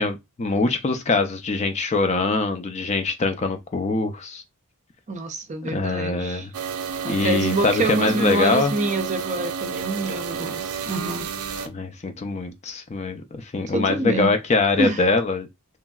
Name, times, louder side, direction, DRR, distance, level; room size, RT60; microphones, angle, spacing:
voice 1, 0.0-4.4 5.6-6.5 7.1-8.7 11.6-15.5, left 3 dB, 30° left, 0.4 m, -23 dB
voice 2, 5.1-6.5 7.0-11.3 13.7-14.3 14.8-15.0, right 2 dB, 35° right, 0.5 m, -26 dB
sound 1, 6.5-11.7, right 6 dB, 85° right, 0.5 m, -31 dB
3.0 x 2.5 x 2.3 m
head